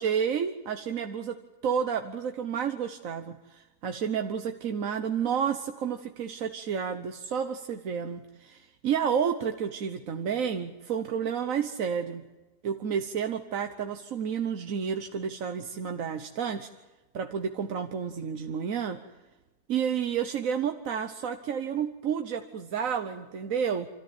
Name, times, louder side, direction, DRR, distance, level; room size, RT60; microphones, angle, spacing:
voice 1, 0.0-12.2 12.6-16.7 17.1-19.0 19.7-23.9, right 7 dB, 90° right, 6 dB, 1.4 m, -30 dB
28.0 x 14.0 x 9.2 m, 1.2 s
omnidirectional pair, 1.4 m